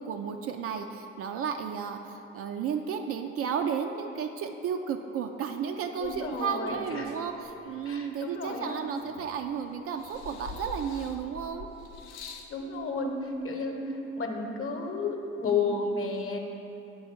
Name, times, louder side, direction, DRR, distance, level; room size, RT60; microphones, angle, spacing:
voice 1, 0.0-11.7, right 7 dB, 40° right, 5 dB, 0.4 m, -33 dB
sound 1, 6.0-7.9 8.4-9.5 9.9-12.6 13.5-13.6, left 4 dB, 65° left, 0.6 m, -45 dB
voice 2, 6.0-7.1 7.8-8.8 12.5-16.4, left 4 dB, 35° left, 3 dB, 1.0 m, -32 dB
7.0 x 4.2 x 6.4 m, 2.9 s
figure-of-eight pair, 45°, 36 cm